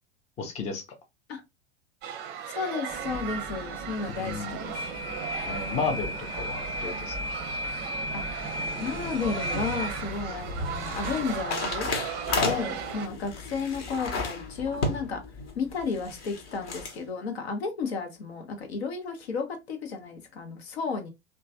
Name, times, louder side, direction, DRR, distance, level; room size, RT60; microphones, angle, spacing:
voice 1, 0.4-0.8 4.1-4.5 5.5-7.2 12.4-12.6, left 5 dB, 20° left, 0.6 m, -32 dB
sound 1, 2.0-13.1, right 9 dB, 30° right, 0.6 m, -37 dB
voice 2, 2.5-4.8 8.1-8.3 8.8-11.9 12.4-15.2 15.6-21.1, left 5 dB, 65° left, 0.9 m, -33 dB
sound 2, 2.9-11.5, equal, 5° left, 1.0 m, -35 dB
sound 3, 9.9-17.0, left 3 dB, 40° left, 1.0 m, -34 dB
3.0 x 2.3 x 2.6 m
figure-of-eight pair, 90°, 34 cm